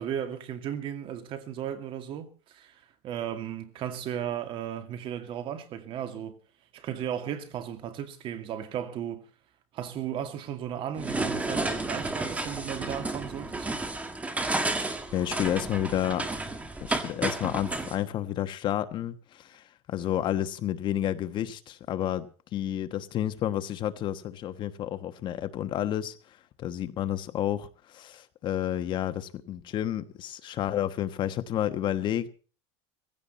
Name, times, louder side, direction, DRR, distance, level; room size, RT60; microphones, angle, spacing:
voice 1, 0.0-2.7 3.0-6.3 6.7-9.2 9.7-13.7, right 9 dB, 35° right, 2.2 m, -35 dB
sound 1, 11.0-18.0, right 2 dB, 10° right, 1.7 m, -32 dB
voice 2, 15.1-16.3 16.9-26.1 26.6-32.3, left 11 dB, 35° left, 1.2 m, -30 dB
17.0 x 16.0 x 4.2 m
cardioid pair, 160°, 14 cm